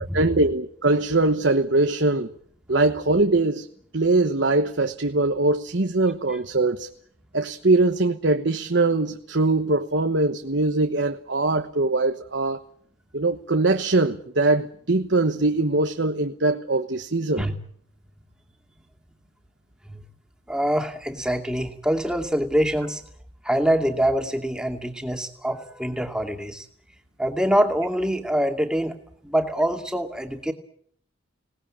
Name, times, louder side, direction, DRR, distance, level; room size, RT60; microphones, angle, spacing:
voice 1, 0.1-2.3 2.7-3.7 3.9-6.9 7.3-12.6 13.1-17.5, right 2 dB, 65° right, 1.2 m, -22 dB
voice 2, 20.5-23.0 23.4-26.7 27.2-28.9 29.2-30.5, equal, 5° right, 2.5 m, -24 dB
26.5 x 19.0 x 8.8 m
head